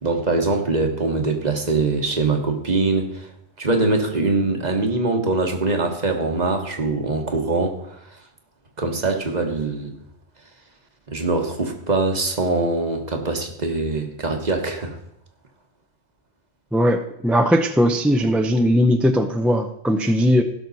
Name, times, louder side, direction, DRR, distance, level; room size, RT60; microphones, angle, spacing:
voice 1, 0.0-3.3 3.6-7.8 8.8-9.9 11.1-15.0, right 3 dB, 40° right, 5 dB, 1.3 m, -23 dB
voice 2, 16.7-20.4, equal, ahead, 6 dB, 0.4 m, -19 dB
16.0 x 6.3 x 4.1 m, 0.78 s
omnidirectional pair, 1.1 m